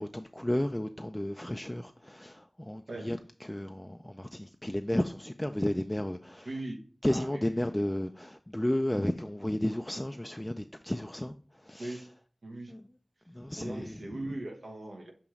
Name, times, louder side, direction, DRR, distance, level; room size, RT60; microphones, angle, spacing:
voice 1, 0.0-6.5 7.0-12.0 12.7-12.9 13.3-14.2, left 1 dB, 15° left, 7 dB, 0.3 m, -33 dB
voice 2, 6.4-6.8 7.1-7.5 11.8-12.1 12.4-12.7 13.6-15.1, right 1 dB, 80° right, 2 dB, 1.3 m, -39 dB
7.0 x 3.0 x 4.8 m, 0.41 s
wide cardioid pair, 60°, 0 cm